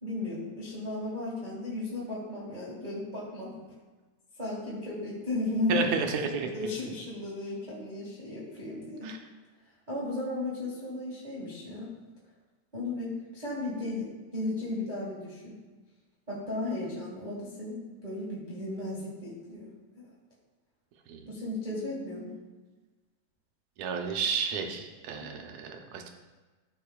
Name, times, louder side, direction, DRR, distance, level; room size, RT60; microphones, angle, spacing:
voice 1, 0.0-3.7 4.4-5.9 6.4-9.1 9.9-11.9 12.7-15.6 16.3-20.1 21.3-22.3 25.1-25.3, left 2 dB, 20° right, -6 dB, 1.3 m, -35 dB
voice 2, 5.7-6.5 9.0-9.2 21.1-21.2 23.8-26.1, right 6 dB, 75° right, 3 dB, 2.0 m, -31 dB
14.5 x 5.4 x 2.3 m, 1.3 s
omnidirectional pair, 3.5 m